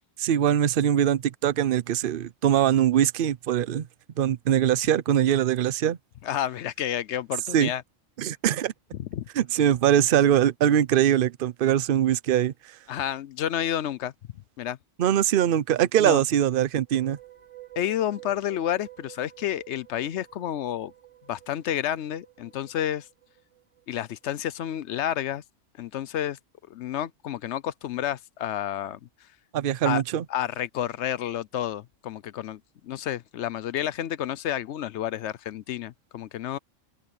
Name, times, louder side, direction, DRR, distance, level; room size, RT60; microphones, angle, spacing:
voice 1, 0.2-3.9 4.2-6.0 7.5-7.7 8.2-8.7 9.4-12.5 15.0-17.2 29.5-30.2, right 10 dB, 55° right, 0.7 m, -22 dB
voice 2, 6.2-7.8 8.9-9.3 12.9-14.1 14.6-14.8 16.0-16.2 17.8-20.9 21.3-23.1 23.9-25.4 25.8-26.4 26.7-29.0 29.8-30.0 30.3-36.6, left 11 dB, 70° left, 0.9 m, -30 dB
sound 1, 16.8-24.0, right 15 dB, 75° right, 2.9 m, -51 dB
open air
omnidirectional pair, 1.3 m